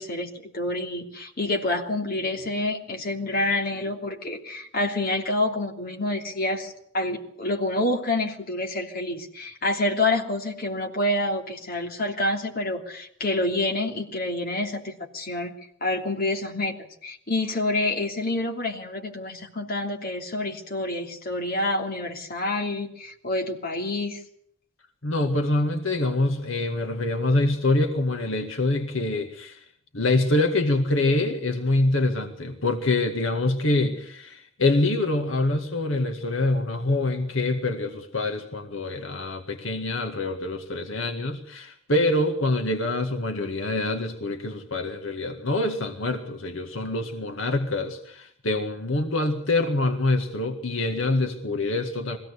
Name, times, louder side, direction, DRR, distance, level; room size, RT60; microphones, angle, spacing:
voice 1, 0.0-15.6 15.8-24.2, left 2 dB, 45° left, 2 dB, 3.0 m, -28 dB
voice 2, 25.0-29.6 29.9-52.2, left 2 dB, 75° left, 4 dB, 2.0 m, -25 dB
22.5 x 16.5 x 8.3 m, 0.69 s
head